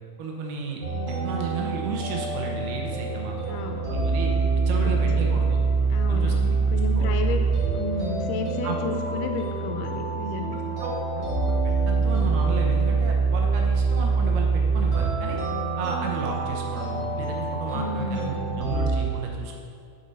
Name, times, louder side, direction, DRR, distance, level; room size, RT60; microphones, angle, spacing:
voice 1, 0.2-0.8 1.2-4.3 4.7-5.6 6.1-6.3 6.7-7.1 8.6-8.8 10.4-15.4 15.8-19.6, right 3 dB, 90° right, 0 dB, 3.0 m, -33 dB
sound 1, 0.8-19.0, right 4 dB, 35° right, 2.5 m, -25 dB
voice 2, 3.5-3.9 4.8-4.9 5.9-7.4 7.7-10.6 17.7-18.5, left 4 dB, 90° left, 5 dB, 2.7 m, -32 dB
7.2 x 7.1 x 5.4 m, 2.3 s
omnidirectional pair, 4.3 m